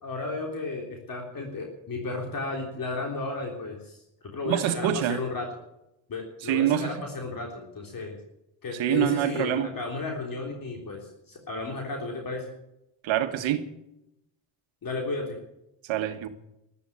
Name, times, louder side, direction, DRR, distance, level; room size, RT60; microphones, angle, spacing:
voice 1, 0.0-4.0 4.3-5.5 6.1-8.2 8.6-12.5 14.8-15.4, left 3 dB, 45° left, 3.7 m, -33 dB
voice 2, 4.4-5.2 6.4-7.0 8.8-9.7 13.0-13.7 15.9-16.3, right 11 dB, 70° right, 1.7 m, -25 dB
13.5 x 12.5 x 8.5 m
supercardioid pair, 70°, 48 cm